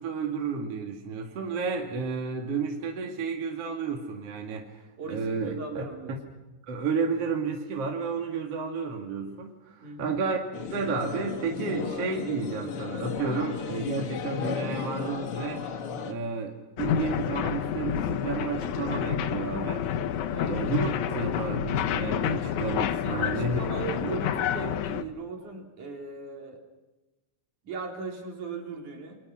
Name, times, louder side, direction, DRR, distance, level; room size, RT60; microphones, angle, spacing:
voice 1, 0.0-5.8 6.7-10.4 10.7-15.7 16.1-19.9 20.5-23.6 24.0-24.1, right 5 dB, 50° right, 2 dB, 2.9 m, -31 dB
voice 2, 5.0-6.1 9.8-10.1 20.3-20.6 23.0-26.6 27.6-29.2, right 4 dB, 65° right, 2 dB, 5.1 m, -38 dB
sound 1, 10.5-16.1, left 6 dB, 50° left, 2.1 m, -34 dB
sound 2, 16.8-25.0, left 9 dB, 70° left, 2.3 m, -29 dB
29.0 x 23.5 x 6.2 m, 1.1 s
omnidirectional pair, 3.7 m